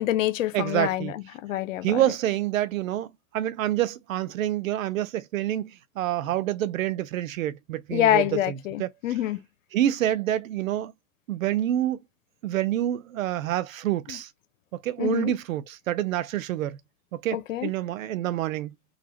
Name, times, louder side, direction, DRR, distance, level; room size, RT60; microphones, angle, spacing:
voice 1, 0.0-2.0 7.9-9.4 14.1-14.2 15.0-15.3 17.3-17.7, left 12 dB, 75° left, 0.9 m, -26 dB
voice 2, 0.5-1.1 1.8-8.9 9.7-10.9 11.3-12.0 12.4-14.3 14.8-16.8 17.1-18.7, right 12 dB, 80° right, 0.8 m, -27 dB
4.1 x 2.4 x 4.5 m
hypercardioid pair, 120°, 39 cm